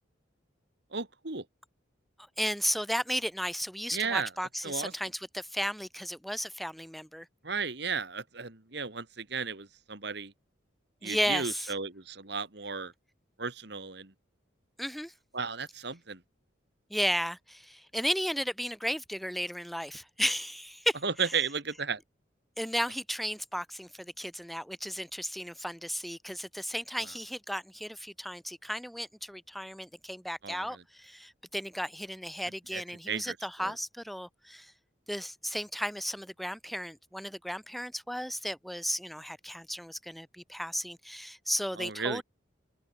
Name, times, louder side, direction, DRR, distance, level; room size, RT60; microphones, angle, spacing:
voice 1, 0.9-1.4 3.9-4.3 4.6-4.9 7.4-10.3 11.0-12.9 13.4-14.1 15.3-16.2 21.0-22.0 30.4-30.7 32.7-32.8 33.1-33.4 33.6-33.7 41.8-42.2, right 5 dB, 55° right, 1.9 m, -34 dB
voice 2, 2.4-7.3 11.0-11.7 14.8-15.1 16.9-21.0 22.6-34.7 35.1-42.2, equal, ahead, 3.4 m, -34 dB
open air
head